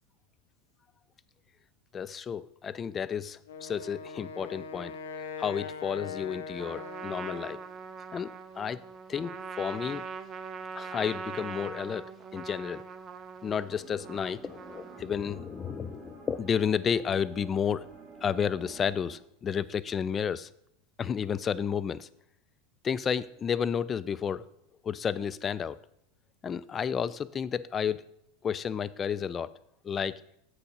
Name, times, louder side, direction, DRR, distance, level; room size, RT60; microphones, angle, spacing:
voice 1, 1.9-5.0 5.4-7.6 8.1-8.8 9.1-10.0 10.8-12.9 13.4-17.9 18.2-20.5 21.0-22.1 22.8-24.5 24.8-25.8 26.4-28.0 28.4-29.5 29.8-30.2, left 7 dB, 25° left, 17 dB, 0.3 m, -31 dB
Wind instrument woodwind instrument, 3.4-7.7, left 5 dB, 70° left, 0.7 m, -41 dB
Trumpet, 6.6-15.3, right 5 dB, 30° right, 0.7 m, -42 dB
sound 1, 13.8-19.2, right 4 dB, 5° right, 2.1 m, -50 dB
7.6 x 6.0 x 5.2 m, 0.73 s
figure-of-eight pair, 85°, 0 cm